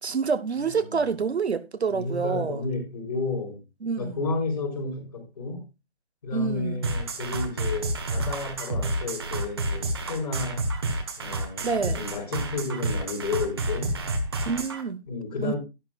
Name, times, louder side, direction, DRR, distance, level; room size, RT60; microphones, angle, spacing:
voice 1, 0.0-2.6 3.8-4.2 6.3-6.8 11.6-12.1 14.4-15.0 15.4-15.6, right 5 dB, 70° right, 1.3 m, -27 dB
voice 2, 0.8-1.1 1.9-3.6 4.0-5.6 6.2-10.7 11.2-14.0 15.1-15.6, left 3 dB, 35° left, 4.5 m, -32 dB
sound 1, 6.8-14.8, right 2 dB, 20° right, 1.1 m, -29 dB
12.0 x 11.0 x 2.3 m
figure-of-eight pair, 165°, 33 cm